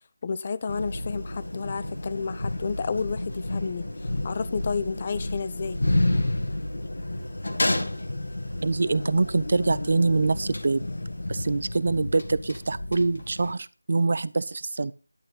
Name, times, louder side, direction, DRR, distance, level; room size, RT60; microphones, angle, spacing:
voice 1, 0.2-5.8, left 5 dB, 25° left, 0.5 m, -31 dB
sound 1, 0.7-13.5, left 1 dB, 65° left, 2.0 m, -30 dB
voice 2, 8.6-10.8 11.3-14.9, right 3 dB, 40° right, 0.5 m, -25 dB
10.5 x 8.8 x 3.9 m
figure-of-eight pair, 170°, 0 cm